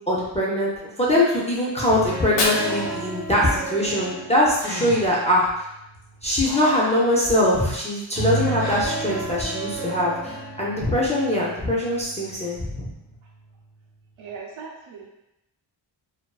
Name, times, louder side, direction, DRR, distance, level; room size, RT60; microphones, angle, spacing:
voice 1, 0.1-0.7 1.0-5.6 6.2-12.9, left 1 dB, 15° left, -6 dB, 0.4 m, -22 dB
sound 1, 1.9-6.1 8.1-13.1, right 2 dB, 35° right, 0.9 m, -33 dB
Fire, 2.1-4.1, left 2 dB, 60° left, 0.6 m, -30 dB
Breathing, 2.6-3.1 4.3-4.4 4.6-5.3 5.9-7.0 8.6-9.1, left 1 dB, 90° left, 0.9 m, -36 dB
voice 2, 14.2-15.1, right 5 dB, 75° right, -1 dB, 0.6 m, -38 dB
2.4 x 2.3 x 2.2 m, 0.88 s
wide cardioid pair, 120°, 48 cm